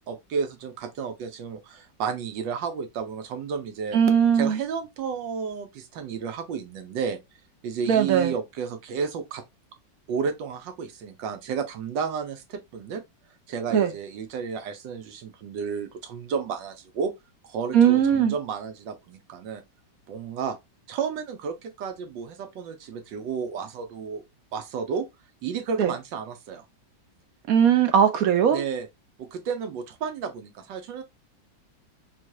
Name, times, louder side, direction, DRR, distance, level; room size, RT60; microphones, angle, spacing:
voice 1, 0.1-4.0 4.3-7.2 7.6-9.4 10.1-13.0 13.5-17.1 17.4-19.6 20.1-20.6 20.9-24.2 24.5-25.0 25.4-26.6 28.5-28.9 29.2-31.0, right 6 dB, 90° right, 1.5 m, -32 dB
voice 2, 3.9-4.6 7.9-8.3 13.7-13.9 17.7-18.3 25.8-25.9 27.5-28.6, right 8 dB, 60° right, 1.1 m, -19 dB
4.2 x 2.3 x 4.6 m
omnidirectional pair, 1.9 m